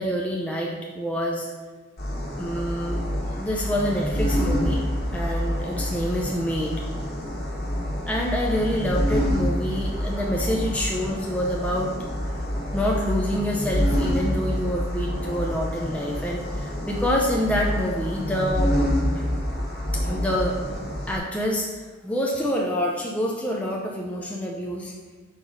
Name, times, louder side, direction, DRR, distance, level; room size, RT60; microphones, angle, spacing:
voice 1, 0.0-1.5 2.4-3.0 3.3-4.8 5.1-6.7 8.1-11.9 12.7-18.7 19.1-19.2 19.9-20.5 21.1-21.7 22.0-24.9, equal, 5° left, -2 dB, 0.6 m, -27 dB
sound 1, 2.0-21.2, equal, 50° left, 1.5 m, -27 dB
5.2 x 4.8 x 5.5 m, 1.3 s
head